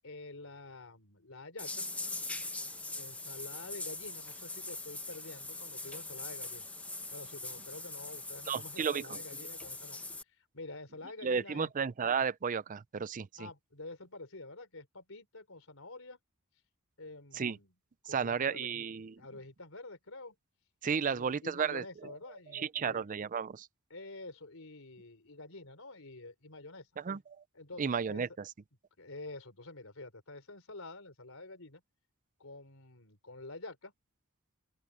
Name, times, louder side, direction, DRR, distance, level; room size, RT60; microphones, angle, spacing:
voice 1, 0.0-1.8 2.9-6.7 7.1-11.7 13.4-16.2 17.0-17.7 18.0-18.8 19.2-20.4 21.0-23.1 23.9-26.9 27.5-28.2 29.0-31.8 32.4-33.9, left 2 dB, 70° left, 4.5 m, -48 dB
sound 1, 1.6-10.2, left 2 dB, 5° left, 0.9 m, -42 dB
voice 2, 8.5-9.2 11.2-13.5 17.3-17.6 18.1-19.2 20.8-21.8 22.5-23.7 27.0-27.4 27.8-28.5, right 6 dB, 35° right, 0.4 m, -33 dB
open air
head